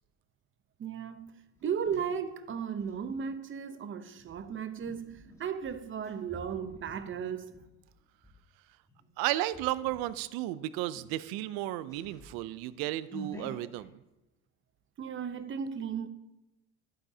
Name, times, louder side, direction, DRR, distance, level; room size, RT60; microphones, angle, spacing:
voice 1, 0.8-1.3 1.6-7.5 15.0-16.1, right 7 dB, 35° right, 0.7 m, -35 dB
sound 1, 1.2-3.2 4.1-8.4 8.9-9.1 9.5-10.1 10.5-10.6 10.9-13.8, equal, 10° left, 2.5 m, -50 dB
voice 2, 9.2-14.0, right 15 dB, 85° right, 0.5 m, -33 dB
11.5 x 9.1 x 2.8 m
cardioid pair, 100°, 35 cm